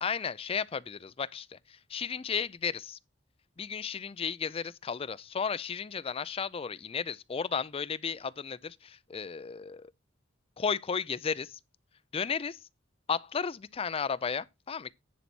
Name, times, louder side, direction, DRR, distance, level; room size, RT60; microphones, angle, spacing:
voice 1, 0.0-1.6 1.9-3.0 3.6-9.9 10.6-11.6 12.1-12.6 13.1-14.9, left 6 dB, 30° left, 0.4 m, -34 dB
10.5 x 4.1 x 6.0 m
head